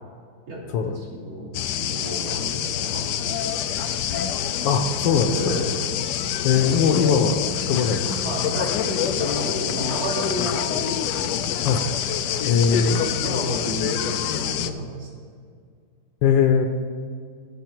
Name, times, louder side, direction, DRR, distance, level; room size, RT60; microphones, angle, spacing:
voice 1, 0.5-4.2 5.3-5.7 8.0-11.6 12.6-15.3, right 1 dB, 70° right, -6 dB, 3.8 m, -32 dB
sound 1, 1.5-14.7, left 9 dB, 90° left, 0.9 m, -26 dB
voice 2, 4.6-5.3 6.4-7.4 7.7-8.3 11.6-11.8 12.5-13.1 16.2-16.7, left 6 dB, 70° left, 5 dB, 1.3 m, -20 dB
16.0 x 5.8 x 4.5 m, 2.1 s
omnidirectional pair, 2.4 m